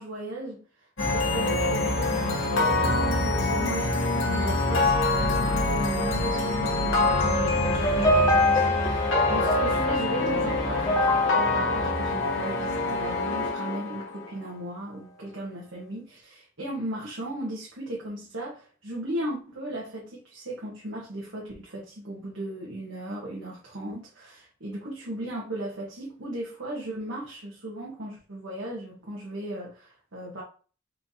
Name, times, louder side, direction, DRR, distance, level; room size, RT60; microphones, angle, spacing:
voice 1, 0.0-30.4, right 1 dB, 85° right, 1.2 m, -37 dB
sound 1, 1.0-14.3, left 2 dB, 80° left, 1.4 m, -25 dB
sound 2, 7.6-13.0, left 1 dB, 15° left, 0.5 m, -26 dB
4.5 x 2.7 x 4.1 m
head